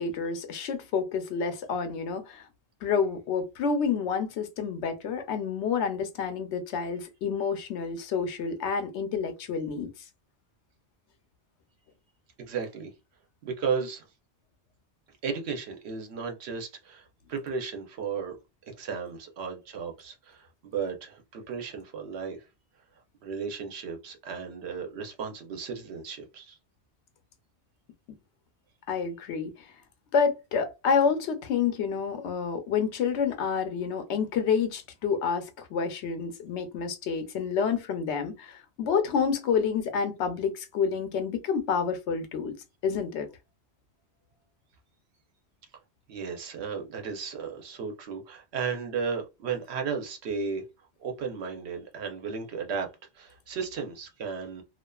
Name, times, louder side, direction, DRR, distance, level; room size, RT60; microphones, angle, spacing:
voice 1, 0.0-2.5 2.8-9.9 28.9-29.7 30.1-42.5 42.8-43.3, left 6 dB, 90° left, 0.9 m, -28 dB
voice 2, 12.4-12.9 13.4-14.0 15.2-18.3 18.7-22.4 23.2-26.6 46.1-50.6 51.0-52.9 53.2-54.6, right 5 dB, 75° right, 0.9 m, -34 dB
2.5 x 2.3 x 2.2 m
omnidirectional pair, 1.1 m